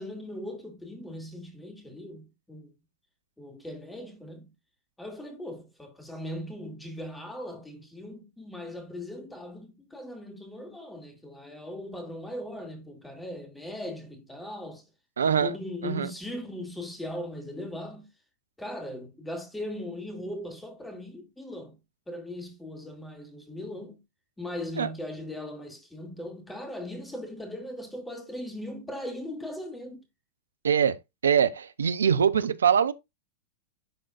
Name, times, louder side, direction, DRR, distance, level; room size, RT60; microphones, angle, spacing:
voice 1, 0.0-2.7 3.4-4.5 5.0-14.8 15.2-18.1 18.6-21.8 22.1-24.0 24.4-30.0, left 1 dB, 5° left, 2.4 m, -39 dB
voice 2, 15.2-15.6 15.8-16.1 24.8-24.9 30.6-32.9, right 7 dB, 80° right, 0.6 m, -23 dB
11.0 x 3.8 x 2.5 m
hypercardioid pair, 100°, 0 cm